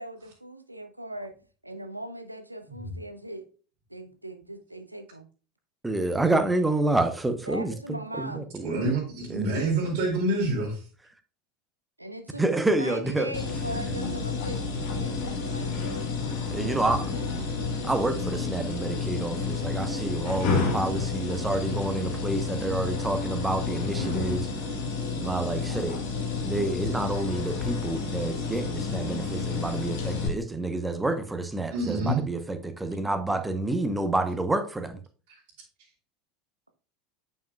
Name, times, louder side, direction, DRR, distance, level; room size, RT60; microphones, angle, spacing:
voice 1, 0.0-1.3 1.6-3.5 3.9-5.3 7.4-8.5 12.0-16.1 16.6-17.4, right 1 dB, 90° right, 0.6 m, -39 dB
voice 2, 5.8-8.9 9.3-9.5 12.4-13.3 16.5-17.0 17.8-24.5 25.2-26.0 26.4-35.0, right 2 dB, 10° right, 0.8 m, -28 dB
voice 3, 8.6-10.8 31.7-32.2, right 2 dB, 60° right, 2.4 m, -27 dB
sound 1, 13.3-30.3, left 4 dB, 55° left, 1.8 m, -30 dB
8.9 x 5.5 x 2.3 m
figure-of-eight pair, 75°, 0 cm